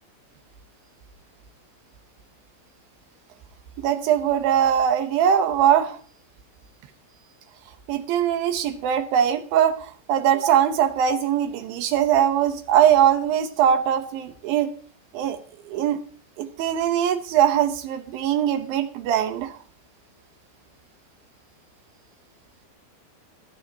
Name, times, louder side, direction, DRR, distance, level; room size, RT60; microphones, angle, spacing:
voice 1, 3.8-6.0 7.9-14.7 15.1-15.4 15.7-16.0 16.4-19.6, right 9 dB, 75° right, 8 dB, 2.6 m, -21 dB
14.5 x 12.0 x 2.8 m, 0.43 s
omnidirectional pair, 4.4 m